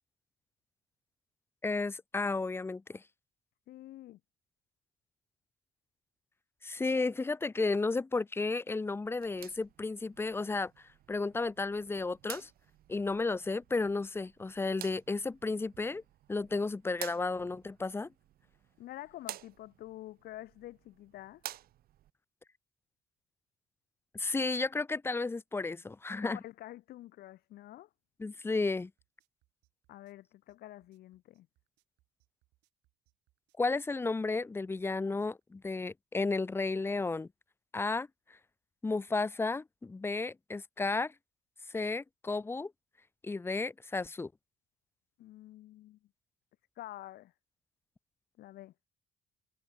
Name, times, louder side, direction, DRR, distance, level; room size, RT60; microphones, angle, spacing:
voice 1, 1.6-3.0 6.6-10.7 11.1-12.5 12.9-16.0 16.3-18.1 24.1-26.4 28.2-28.9 33.6-37.3 37.7-38.1 38.8-41.1 41.7-42.7 43.2-44.3, left 3 dB, 15° left, 0.5 m, -33 dB
voice 2, 3.7-4.2 18.8-21.4 26.2-27.9 29.9-31.5 45.2-46.0 46.8-47.3 48.4-48.7, left 15 dB, 65° left, 0.8 m, -48 dB
sound 1, 9.1-22.1, right 13 dB, 60° right, 0.9 m, -51 dB
sound 2, 28.8-35.4, right 19 dB, 90° right, 6.8 m, -76 dB
cardioid pair, 110°, 17 cm